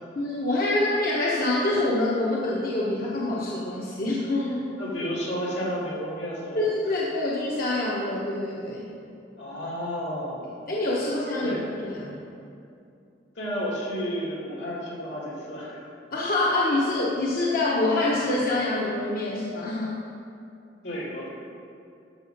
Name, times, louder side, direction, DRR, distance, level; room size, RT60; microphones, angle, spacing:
voice 1, 0.1-4.6 6.5-8.9 10.7-12.1 16.1-20.0, left 2 dB, 55° left, -5 dB, 1.1 m, -26 dB
voice 2, 4.8-6.7 9.4-10.5 11.4-11.7 13.3-15.8 20.8-21.3, equal, 80° left, -5 dB, 2.7 m, -32 dB
12.5 x 5.6 x 5.4 m, 2.6 s
head